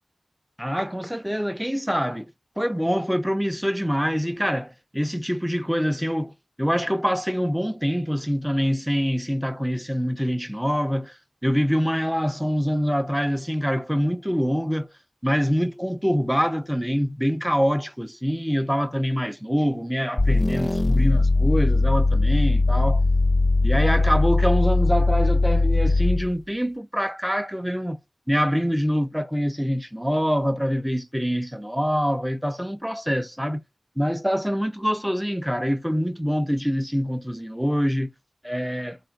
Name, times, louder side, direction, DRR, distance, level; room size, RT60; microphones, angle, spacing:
voice 1, 0.6-6.3 6.6-11.2 11.4-14.9 15.2-23.0 23.6-28.0 28.3-33.6 34.0-38.1 38.4-39.0, equal, ahead, 0.5 m, -25 dB
sound 1, 20.2-26.4, left 2 dB, 40° left, 0.6 m, -20 dB
3.5 x 2.5 x 3.8 m
wide cardioid pair, 55°, 0 cm